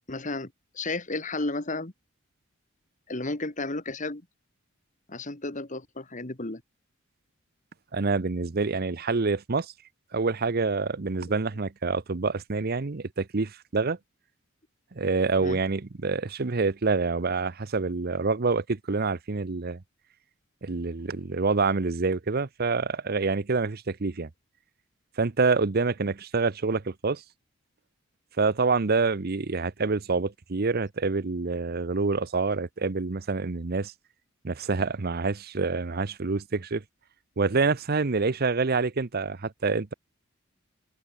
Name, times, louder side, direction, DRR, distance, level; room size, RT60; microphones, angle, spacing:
voice 1, 0.1-1.9 3.1-4.2 5.1-6.6 11.2-11.4 15.4-15.6 26.0-26.1, left 2 dB, 40° left, 2.0 m, -33 dB
voice 2, 7.9-9.7 10.1-14.0 14.9-19.8 20.6-24.3 25.2-27.2 28.4-33.9 34.4-36.8 37.4-39.9, right 4 dB, 50° right, 0.8 m, -27 dB
head